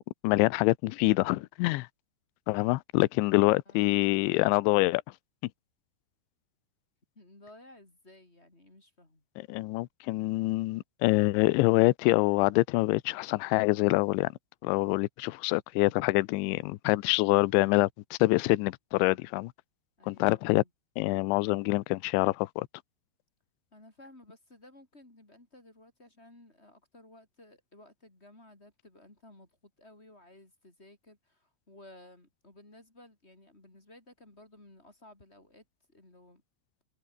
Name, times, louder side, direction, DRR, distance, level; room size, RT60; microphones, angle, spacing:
voice 1, 0.2-1.9 2.5-5.0 9.4-14.3 14.6-19.5 20.1-20.6 21.0-22.7, left 21 dB, 80° left, 2.8 m, -25 dB
voice 2, 3.7-4.0 7.1-9.2 20.0-20.7 23.7-36.4, left 1 dB, 15° left, 3.7 m, -56 dB
omnidirectional pair, 5.9 m